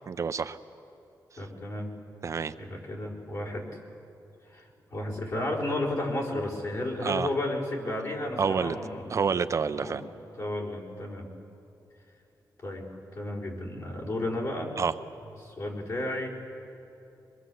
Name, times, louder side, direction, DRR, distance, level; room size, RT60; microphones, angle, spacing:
voice 1, 0.1-0.6 2.2-2.5 7.0-7.3 8.4-8.8 9.1-10.0 14.8-14.9, right 5 dB, 45° right, 11 dB, 0.6 m, -28 dB
voice 2, 1.4-1.9 2.6-3.8 4.5-9.2 9.8-10.0 10.4-11.3 12.6-14.7 15.4-16.3, left 1 dB, 50° left, -4 dB, 4.6 m, -33 dB
24.0 x 22.0 x 7.8 m, 2.7 s
wide cardioid pair, 130°, 7 cm